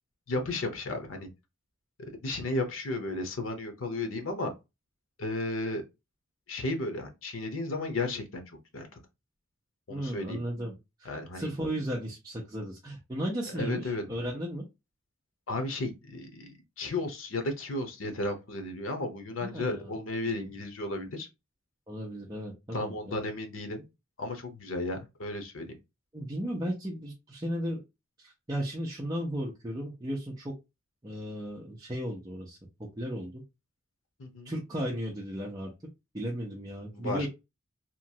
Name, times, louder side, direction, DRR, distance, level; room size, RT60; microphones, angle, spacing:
voice 1, 0.3-1.3 2.0-4.5 5.2-5.8 6.5-8.4 8.7-8.9 9.9-10.4 11.0-11.5 13.5-14.0 15.5-21.3 22.7-23.8 24.2-25.7 34.2-34.5 36.9-37.3, left 2 dB, 80° left, 0.8 m, -34 dB
voice 2, 9.9-11.1 11.3-14.6 19.4-19.9 20.3-20.5 21.9-23.2 26.1-27.8 28.2-30.5 31.0-32.6 33.0-33.4 34.4-35.7 36.1-37.3, equal, 20° right, 0.6 m, -35 dB
2.9 x 2.3 x 2.7 m
head